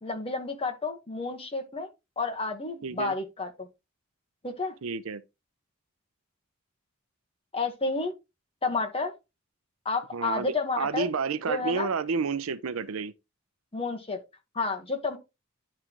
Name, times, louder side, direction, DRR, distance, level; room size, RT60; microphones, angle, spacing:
voice 1, 0.0-1.9 2.2-3.7 4.4-4.7 7.5-8.1 8.6-9.1 9.8-11.1 11.5-11.9 13.7-14.2 14.5-15.2, left 3 dB, 25° left, 1.3 m, -30 dB
voice 2, 2.8-3.1 4.8-5.2 10.1-13.1, right 5 dB, 80° right, 0.6 m, -30 dB
11.0 x 3.8 x 3.0 m
head